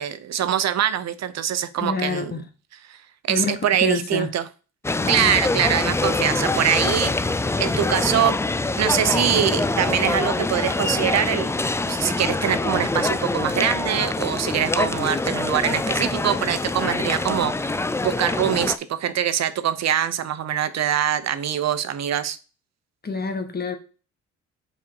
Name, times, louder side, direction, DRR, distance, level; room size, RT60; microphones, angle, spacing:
voice 1, 0.0-2.3 2.9-3.0 3.3-4.5 5.1-8.4 8.8-11.6 11.9-22.4, right 10 dB, 60° right, 0.8 m, -23 dB
voice 2, 1.8-2.4 3.3-4.3 5.0-5.4 23.0-23.8, left 4 dB, 30° left, 1.4 m, -27 dB
sound 1, 4.8-18.8, left 2 dB, 10° left, 0.4 m, -24 dB
5.6 x 4.8 x 4.7 m
cardioid pair, 90°, 30 cm